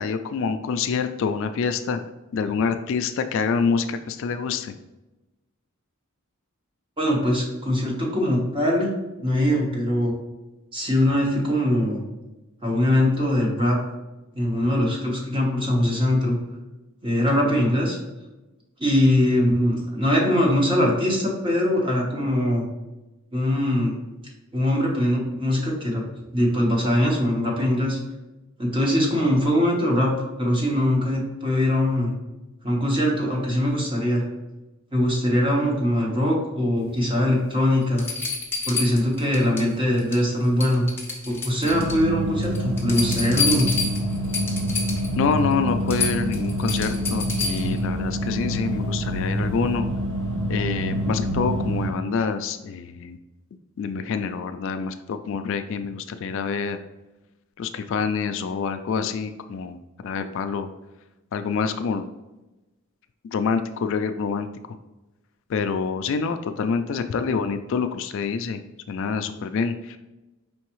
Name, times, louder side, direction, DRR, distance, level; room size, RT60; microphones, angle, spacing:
voice 1, 0.0-2.0 2.3-4.7 45.2-49.9 50.5-53.2 53.8-56.8 57.6-59.8 60.0-60.7 61.3-62.1 63.2-64.5 65.5-68.6 68.9-70.0, left 5 dB, 60° left, 9 dB, 0.3 m, -26 dB
voice 2, 7.0-8.9 9.2-10.1 10.7-12.0 12.6-13.8 14.3-16.4 17.0-18.0 18.8-22.7 23.3-24.0 24.5-28.0 28.6-30.1 30.4-32.1 32.6-34.2 34.9-38.1 38.7-40.9 41.3-43.7, left 1 dB, 25° right, -2 dB, 1.0 m, -22 dB
sound 1, 37.3-37.4 38.0-39.7 40.0-40.3 40.6-42.0 42.4-45.1 45.5-45.6 45.9-47.8 49.5-49.6, left 4 dB, 10° left, 0.7 m, -29 dB
sound 2, 41.6-51.9, equal, 70° right, 1.6 m, -27 dB
4.7 x 3.5 x 3.0 m, 1.0 s
head